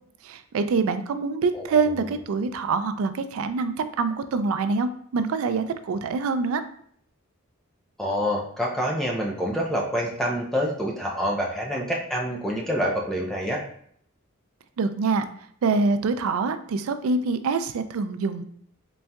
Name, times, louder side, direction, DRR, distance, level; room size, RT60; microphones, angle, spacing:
voice 1, 0.2-6.6 14.8-15.3 15.6-18.4, right 4 dB, 75° right, 10 dB, 0.3 m, -25 dB
voice 2, 8.0-13.6, equal, ahead, -2 dB, 0.5 m, -27 dB
4.1 x 3.5 x 2.2 m, 0.63 s
head